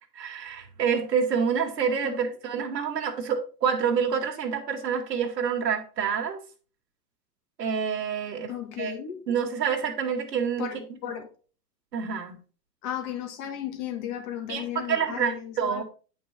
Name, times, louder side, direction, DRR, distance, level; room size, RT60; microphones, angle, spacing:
voice 1, 0.1-6.4 7.6-8.5 8.8-8.9 9.3-10.7 11.9-12.4 14.5-15.8, right 7 dB, 80° right, 2.6 m, -27 dB
voice 2, 8.5-9.2 10.6-11.3 12.8-15.8, left 10 dB, 35° left, 1.8 m, -35 dB
9.3 x 5.5 x 4.4 m
hypercardioid pair, 130°, 48 cm